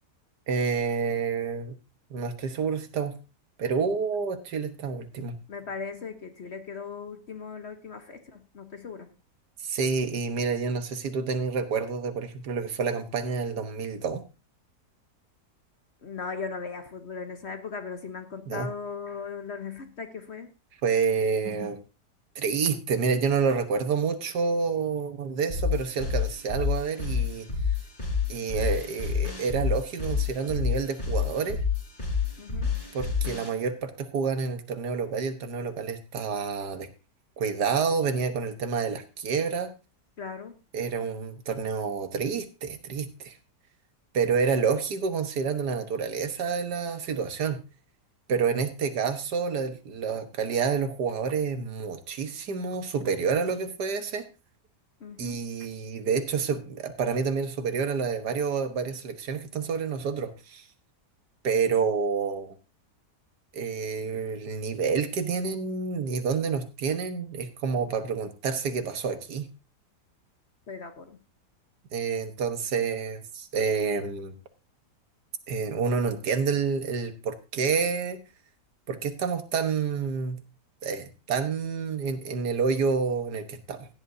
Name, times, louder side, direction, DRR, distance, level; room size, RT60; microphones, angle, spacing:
voice 1, 0.5-1.8 2.1-3.2 3.6-5.4 9.6-14.2 18.5-18.7 20.8-21.8 22.3-27.5 28.3-31.6 32.9-36.9 37.4-39.7 40.7-43.4 44.1-47.6 48.3-54.3 55.2-60.7 61.4-62.6 63.5-69.5 71.9-74.3 75.5-78.2 78.9-80.4 80.8-83.9, right 5 dB, 75° right, 9 dB, 1.7 m, -28 dB
voice 2, 5.5-9.1 16.0-20.5 32.4-32.7 40.2-40.6 55.0-55.4 70.7-71.2, left 5 dB, 45° left, 7 dB, 1.1 m, -38 dB
sound 1, 25.5-33.5, left 6 dB, 30° left, 4.1 m, -29 dB
16.0 x 10.5 x 2.7 m, 0.30 s
omnidirectional pair, 1.8 m